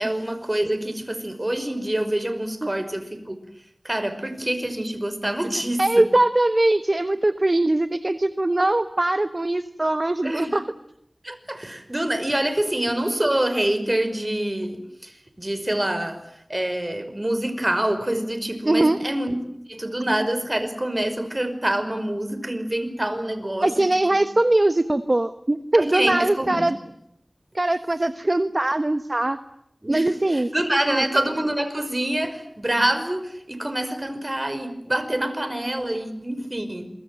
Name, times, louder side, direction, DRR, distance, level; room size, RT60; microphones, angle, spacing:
voice 1, 0.0-3.4 3.8-6.0 10.2-10.5 11.2-16.2 16.5-19.4 19.7-23.7 24.1-24.2 25.7-26.7 29.8-36.9, right 1 dB, 30° right, 10 dB, 5.5 m, -26 dB
voice 2, 5.8-10.6 18.7-19.0 23.6-26.8 27.5-29.4 29.9-30.5 30.9-31.0, right 2 dB, 45° right, 11 dB, 1.2 m, -21 dB
28.0 x 24.5 x 7.7 m, 0.76 s
wide cardioid pair, 40°, 0 cm